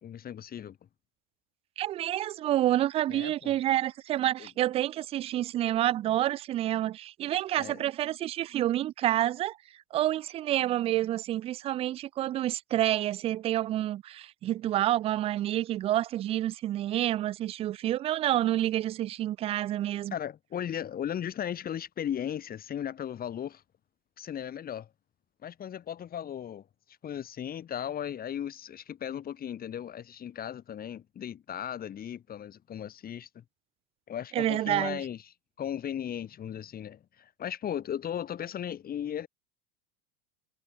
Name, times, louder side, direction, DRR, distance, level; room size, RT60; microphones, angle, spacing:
voice 1, 0.0-0.8 3.1-3.6 4.4-4.5 7.6-7.8 20.1-23.6 24.2-24.9 25.4-33.4 34.1-35.2 35.6-39.3, left 9 dB, 20° left, 3.6 m, -36 dB
voice 2, 1.8-9.6 9.9-20.1 34.3-35.0, right 13 dB, 15° right, 0.4 m, -28 dB
supercardioid pair, 175°, 43 cm